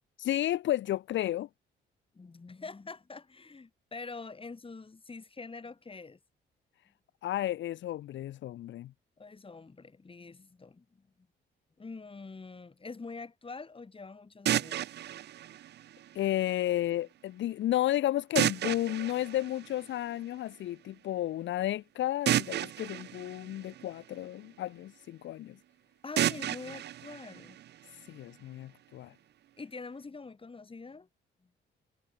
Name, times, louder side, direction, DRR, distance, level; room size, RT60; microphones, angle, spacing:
voice 1, 0.2-1.5 7.2-8.9 16.1-25.6 28.1-29.1, left 13 dB, 70° left, 0.8 m, -32 dB
voice 2, 2.1-6.2 9.2-11.3 11.8-14.8 26.0-27.6 29.6-31.1, left 4 dB, 25° left, 5.2 m, -45 dB
sound 1, 14.5-16.5 18.4-20.3 22.3-24.5 26.2-28.2, right 12 dB, 60° right, 0.5 m, -33 dB
cardioid pair, 90°, 20 cm